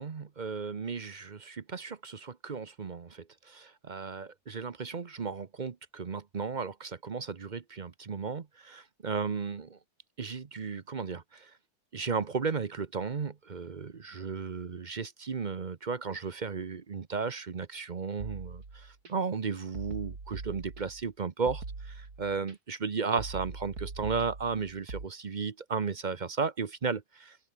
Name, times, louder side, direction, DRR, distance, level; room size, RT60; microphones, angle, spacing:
voice 1, 0.0-9.8 10.2-11.5 11.9-27.4, right 5 dB, 35° right, 0.8 m, -35 dB
sound 1, 18.2-19.1 19.7-21.1 21.5-22.5 23.2-25.1, right 3 dB, 75° right, 4.0 m, -42 dB
open air
omnidirectional pair, 1.6 m